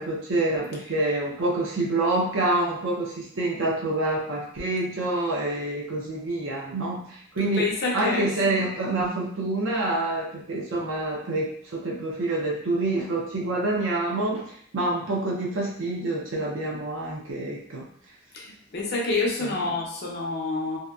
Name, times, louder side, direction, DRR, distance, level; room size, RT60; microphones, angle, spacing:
voice 1, 0.0-17.9 19.4-19.7, right 2 dB, 65° right, -3 dB, 0.6 m, -27 dB
voice 2, 7.4-8.5 8.8-9.0 18.3-20.8, left 3 dB, 50° left, -1 dB, 0.5 m, -28 dB
2.7 x 2.1 x 2.3 m, 0.64 s
head